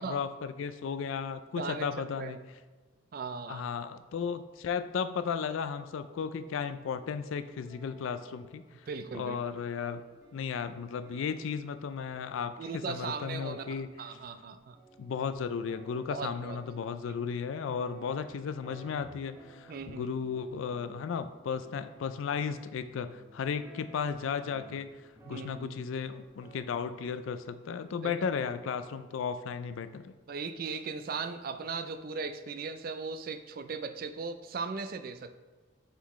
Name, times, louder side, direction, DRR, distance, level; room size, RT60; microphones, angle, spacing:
voice 1, 0.0-2.4 3.5-8.9 9.1-10.0 10.3-13.9 15.0-24.9 25.3-30.1, left 6 dB, 75° left, 11 dB, 0.3 m, -35 dB
voice 2, 1.6-2.4 3.1-3.7 8.9-9.4 12.6-14.8 16.1-16.6 17.1-17.2 19.7-20.1 25.3-25.9 28.0-28.1 30.3-35.4, right 4 dB, 45° right, 9 dB, 0.3 m, -38 dB
sound 1, 7.0-12.5 13.1-13.2 13.5-26.6, right 2 dB, 15° right, 0.9 m, -57 dB
8.0 x 3.9 x 3.1 m, 1.3 s
head